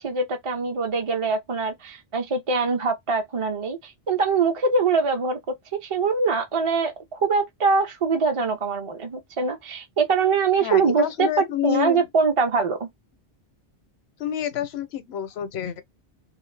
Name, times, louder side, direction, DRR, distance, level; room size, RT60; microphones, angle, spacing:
voice 1, 0.0-5.4 5.7-11.3 11.6-12.9, right 4 dB, 40° right, 0.5 m, -23 dB
voice 2, 10.6-12.1 14.2-15.8, left 11 dB, 80° left, 0.9 m, -28 dB
2.7 x 2.4 x 3.2 m
omnidirectional pair, 1.1 m